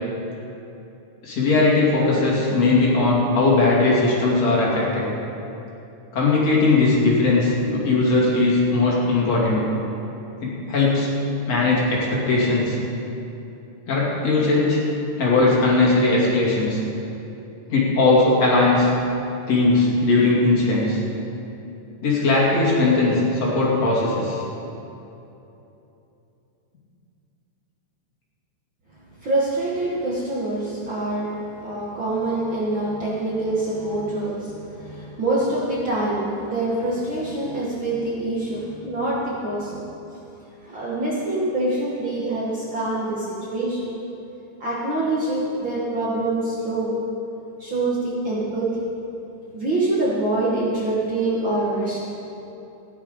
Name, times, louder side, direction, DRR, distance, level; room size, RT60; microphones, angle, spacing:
voice 1, 1.2-5.1 6.1-9.7 10.4-11.1 11.5-12.8 13.9-14.8 15.2-16.8 17.7-18.9 19.5-21.0 22.0-24.4, left 3 dB, 55° left, -5 dB, 3.6 m, -19 dB
voice 2, 29.2-39.8 40.6-43.9 44.6-47.0 47.6-48.8 49.5-52.0, right 2 dB, 45° right, -6 dB, 1.9 m, -25 dB
15.5 x 11.0 x 5.3 m, 2.9 s
omnidirectional pair, 3.7 m